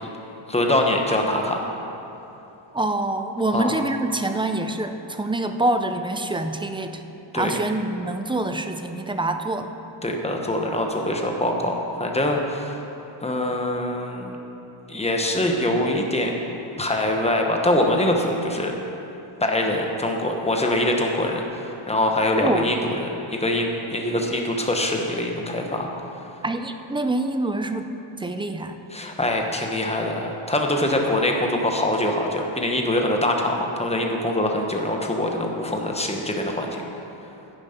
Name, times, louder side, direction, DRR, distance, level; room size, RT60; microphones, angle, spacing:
voice 1, 0.5-1.6 3.5-3.7 7.3-7.6 10.0-12.8 13.2-14.4 14.9-16.3 16.8-18.7 19.4-22.9 23.3-25.9 28.9-36.8, left 1 dB, 15° left, 1 dB, 1.0 m, -23 dB
voice 2, 2.7-7.0 7.3-9.7 22.4-22.7 26.4-27.9 28.2-28.8, right 2 dB, 10° right, 7 dB, 0.3 m, -25 dB
10.0 x 10.0 x 5.8 m, 2.9 s
wide cardioid pair, 170°, 48 cm